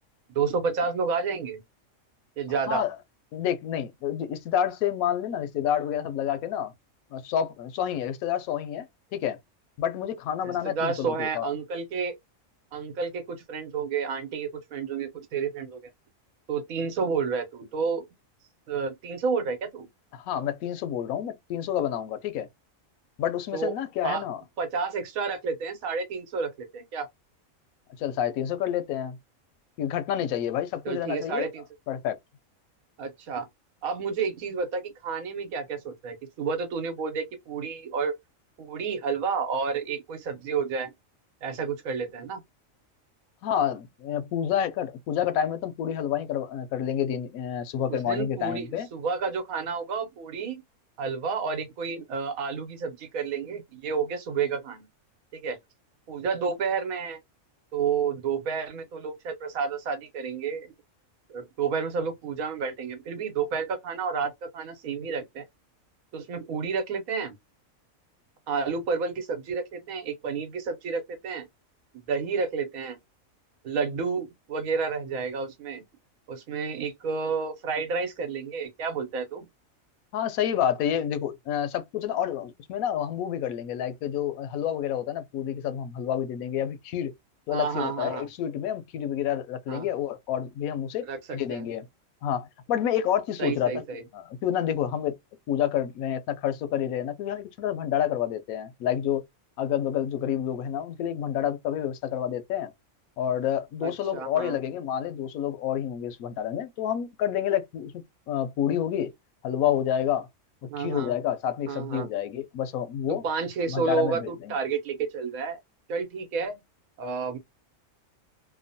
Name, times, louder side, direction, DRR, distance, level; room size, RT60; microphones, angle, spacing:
voice 1, 0.3-1.6 2.4-2.8 10.4-12.1 12.7-15.8 16.5-18.0 18.7-19.9 23.5-23.7 24.0-24.2 24.6-27.1 30.8-31.6 33.0-33.5 33.8-38.1 38.6-40.9 41.4-42.4 47.9-50.6 51.0-54.9 55.3-55.6 56.1-57.2 57.7-60.7 61.3-65.4 66.1-67.4 68.5-71.5 72.1-73.0 73.6-75.8 76.3-79.5 87.5-88.3 89.7-89.9 91.1-91.7 93.4-94.0 103.8-104.5 110.7-111.1 111.7-112.1 113.1-115.6 115.9-116.6 117.0-117.4, right 5 dB, 85° right, 1.2 m, -30 dB
voice 2, 3.3-6.7 7.1-8.9 9.1-9.4 9.8-11.5 20.1-22.5 23.2-24.4 28.0-29.2 29.8-31.5 31.9-32.2 43.4-48.9 80.1-87.1 87.5-91.1 91.3-91.9 92.2-93.8 94.1-95.2 95.5-99.2 99.6-102.7 103.2-107.9 108.3-109.1 109.4-110.3 110.8-113.2 113.7-114.6, left 10 dB, 90° left, 1.0 m, -29 dB
2.8 x 2.1 x 2.6 m
omnidirectional pair, 1.4 m